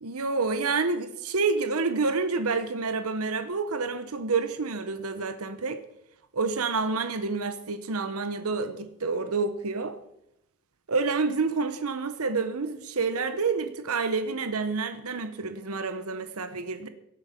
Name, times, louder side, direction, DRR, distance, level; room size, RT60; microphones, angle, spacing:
voice 1, 0.0-5.8 6.3-10.0 10.9-16.9, right 4 dB, 75° right, 1.0 m, -28 dB
16.5 x 8.8 x 5.9 m
head